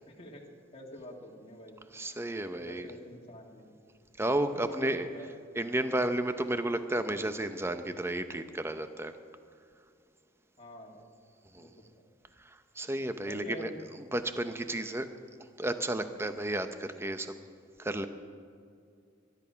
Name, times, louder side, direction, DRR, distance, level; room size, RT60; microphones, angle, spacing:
voice 1, 0.1-1.8 2.5-3.8 4.5-5.3 10.6-11.1 11.5-11.7 11.9-12.1 13.3-13.9, left 1 dB, 30° left, 0 dB, 2.0 m, -46 dB
voice 2, 1.9-2.9 4.2-5.1 5.6-9.1 11.5-11.7 12.8-13.7 14.1-15.1 15.6-17.3 17.8-18.1, right 1 dB, 10° right, 9 dB, 0.7 m, -32 dB
22.5 x 11.0 x 5.7 m, 2.4 s
head